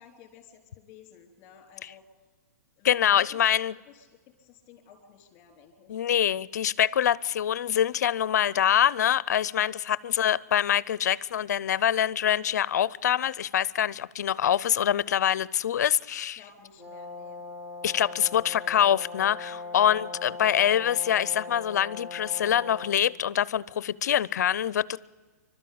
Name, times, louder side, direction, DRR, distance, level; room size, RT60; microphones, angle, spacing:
voice 1, 0.0-2.1 2.8-6.0 9.7-10.0 16.4-17.4 19.5-19.8, left 8 dB, 30° left, 4.3 m, -53 dB
voice 2, 2.8-3.7 5.9-16.4 17.8-25.0, left 10 dB, 75° left, 0.6 m, -25 dB
Brass instrument, 16.8-23.0, left 3 dB, 20° right, 3.9 m, -40 dB
26.5 x 12.5 x 8.7 m
hypercardioid pair, 145°, 9 cm